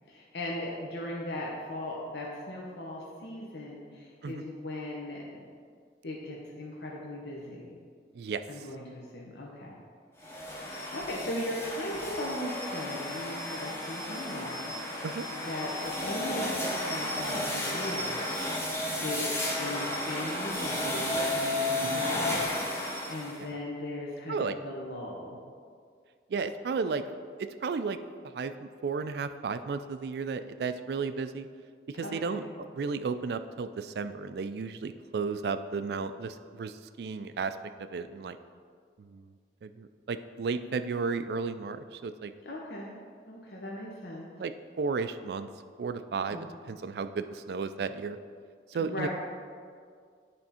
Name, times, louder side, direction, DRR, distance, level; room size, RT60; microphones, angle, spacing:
voice 1, 0.1-5.5 6.0-7.8 8.5-9.8 10.9-15.1 15.3-18.3 19.0-19.2 19.6-25.4 32.0-32.5 42.4-43.0 43.3-44.3 46.3-46.5 48.8-49.1, left 1 dB, 75° left, -3 dB, 0.9 m, -38 dB
sound 1, 10.2-23.4, left 1 dB, 15° left, 0.8 m, -33 dB
voice 2, 26.3-27.1 27.4-28.0 28.3-31.5 31.9-32.4 32.7-38.4 39.0-39.3 39.6-42.3 44.4-45.5 45.8-48.2 48.7-49.1, right 4 dB, 65° right, 11 dB, 0.3 m, -33 dB
10.5 x 3.5 x 4.2 m, 2.1 s
head